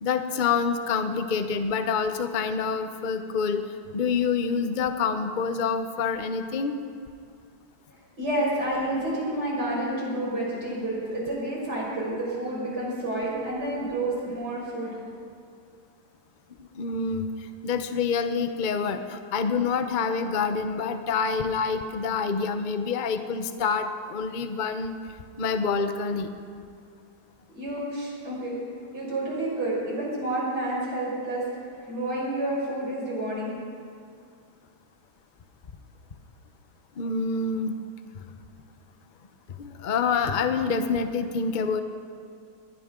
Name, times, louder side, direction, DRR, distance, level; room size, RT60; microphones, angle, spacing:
voice 1, 0.0-3.6 3.9-6.8 16.6-17.3 17.6-25.0 25.4-26.3 37.0-37.7 38.1-38.2 39.6-41.8, left 5 dB, 50° left, 8 dB, 0.6 m, -27 dB
voice 2, 8.2-15.0 27.5-28.6 28.9-31.4 31.9-33.5, right 1 dB, 60° right, -5 dB, 5.9 m, -29 dB
20.5 x 16.5 x 3.8 m, 2.3 s
omnidirectional pair, 2.0 m